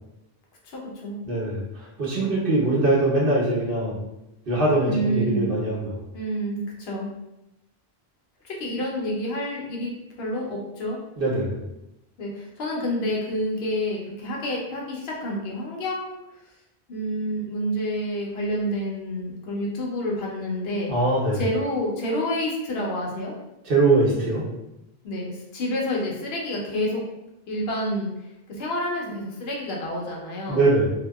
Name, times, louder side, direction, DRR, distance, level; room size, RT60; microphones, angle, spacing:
voice 1, 0.6-1.2 4.9-5.6 6.1-7.1 8.4-11.0 12.2-16.2 16.9-20.9 21.3-23.3 25.0-27.0 27.5-28.1 28.5-30.7, equal, 80° left, -2 dB, 0.9 m, -28 dB
voice 2, 1.2-4.0 4.5-6.0 11.2-11.5 20.9-21.4 23.6-24.4 30.5-30.9, right 2 dB, 60° right, -6 dB, 1.0 m, -22 dB
2.7 x 2.1 x 2.2 m, 0.92 s
omnidirectional pair, 1.0 m